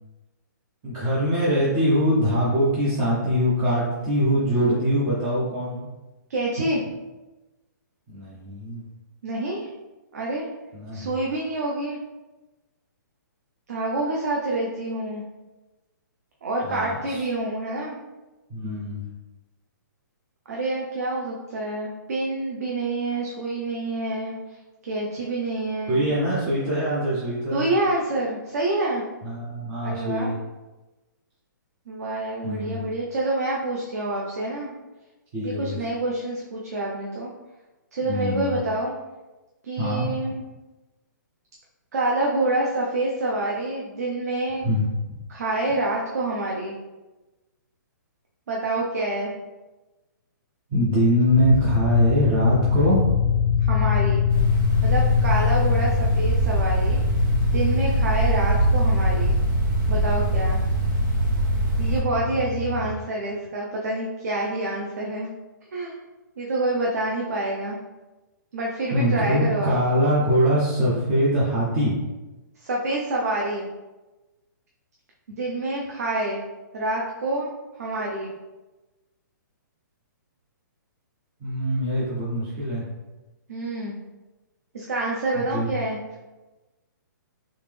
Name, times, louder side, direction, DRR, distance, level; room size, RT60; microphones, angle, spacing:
voice 1, 0.8-5.9 8.1-8.8 10.7-11.1 16.6-17.2 18.5-19.0 25.9-27.7 29.2-30.3 32.4-32.8 35.3-35.8 38.1-38.6 39.8-40.1 44.6-45.2 50.7-53.0 68.9-71.9 81.4-82.8 85.3-85.7, equal, 10° right, -8 dB, 0.3 m, -23 dB
voice 2, 6.3-6.8 9.2-9.7 10.1-10.5 10.9-12.0 13.7-15.2 16.4-18.0 20.5-24.3 24.9-26.1 27.5-29.0 29.8-30.3 31.9-34.7 35.4-37.3 37.9-38.9 39.6-40.4 41.9-44.6 45.3-46.7 48.5-49.3 53.6-54.2 54.8-57.0 57.4-59.4 59.9-60.6 61.8-65.3 65.7-66.0 66.4-67.8 68.5-69.8 72.6-73.7 75.3-76.4 76.7-77.5 77.8-78.3 83.5-84.0 84.7-86.0, right 2 dB, 50° right, -2 dB, 0.6 m, -27 dB
sound 1, 51.3-63.0, left 6 dB, 85° left, 0.7 m, -24 dB
sound 2, 54.3-62.0, right 2 dB, 90° right, 1.4 m, -23 dB
3.5 x 2.9 x 3.2 m, 1.1 s
hypercardioid pair, 180°, 11 cm